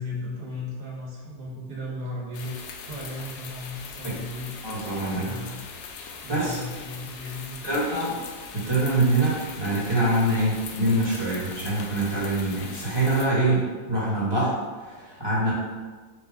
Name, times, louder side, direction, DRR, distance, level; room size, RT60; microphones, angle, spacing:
voice 1, 0.0-4.5 5.2-5.6 6.2-7.8, left 2 dB, 60° right, -5 dB, 1.7 m, -36 dB
sound 1, 2.3-13.3, left 5 dB, 75° left, 1.2 m, -41 dB
voice 2, 4.6-5.4 6.3-6.6 7.6-8.2 8.5-15.5, right 2 dB, 15° right, -9 dB, 1.2 m, -25 dB
4.6 x 2.4 x 4.9 m, 1.4 s
omnidirectional pair, 2.1 m